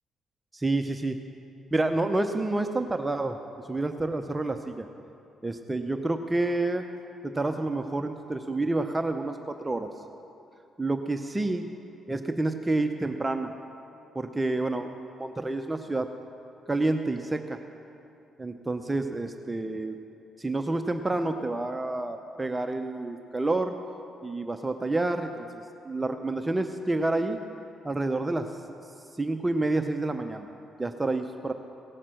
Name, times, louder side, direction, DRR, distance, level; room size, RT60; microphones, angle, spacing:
voice 1, 0.5-1.2 1.7-3.4 3.7-4.9 5.4-6.8 7.2-9.9 10.8-11.7 12.1-13.5 14.1-16.1 16.7-17.6 18.4-20.0 20.4-23.7 24.2-27.4 27.8-28.5 29.2-30.5 30.8-31.5, right 2 dB, 15° right, 6 dB, 0.6 m, -29 dB
17.0 x 6.5 x 7.6 m, 2.7 s
cardioid pair, 90°, 0 cm